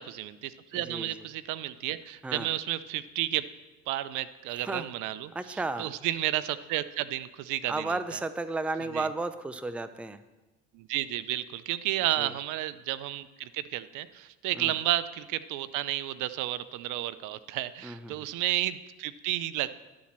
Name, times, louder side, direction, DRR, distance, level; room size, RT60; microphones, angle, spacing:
voice 1, 0.0-3.4 3.9-8.2 8.9-9.1 10.7-19.7, right 14 dB, 70° right, 15 dB, 0.6 m, -32 dB
voice 2, 0.7-1.1 2.2-2.5 4.6-4.9 5.3-5.9 7.7-10.2 12.2-12.3 14.6-14.7 17.8-18.2, right 3 dB, 5° right, 12 dB, 0.4 m, -33 dB
11.5 x 4.2 x 7.3 m, 1.1 s
supercardioid pair, 85°, 32 cm